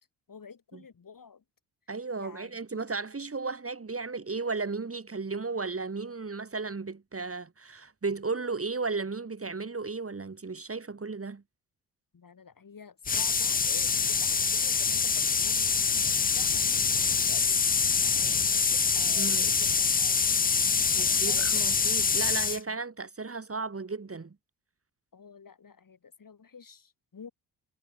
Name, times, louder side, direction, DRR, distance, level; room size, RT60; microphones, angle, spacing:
voice 1, 0.3-1.4 2.2-2.8 12.1-16.7 17.1-20.2 21.0-21.7 22.7-22.8 25.1-27.3, left 6 dB, 40° left, 7.3 m, -49 dB
voice 2, 1.9-11.4 19.2-19.5 21.0-24.4, right 4 dB, 25° right, 3.8 m, -34 dB
sound 1, 13.0-22.6, left 5 dB, 20° left, 0.6 m, -25 dB
hypercardioid pair, 45°, 49 cm